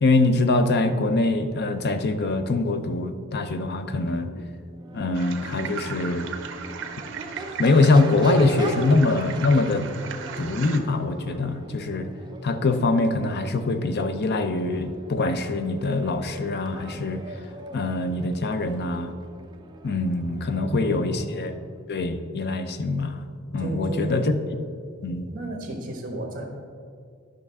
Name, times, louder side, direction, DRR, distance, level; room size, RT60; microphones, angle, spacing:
voice 1, 0.0-4.5 4.9-6.3 7.6-9.9 10.4-12.1 12.4-17.2 17.7-19.1 19.8-21.6 21.9-23.2 23.5-24.6 25.0-25.3, left 2 dB, 50° left, 9 dB, 0.5 m, -23 dB
Crowd / Race car auto racing / Accelerating revving vroom, 4.7-21.8, right 2 dB, 20° right, 0.5 m, -40 dB
sound 1, 5.1-10.8, right 7 dB, 60° right, 0.7 m, -37 dB
voice 2, 20.5-21.5 23.6-24.4 25.3-26.4, right 1 dB, 40° right, 0 dB, 1.2 m, -32 dB
11.0 x 5.9 x 3.6 m, 2.2 s
head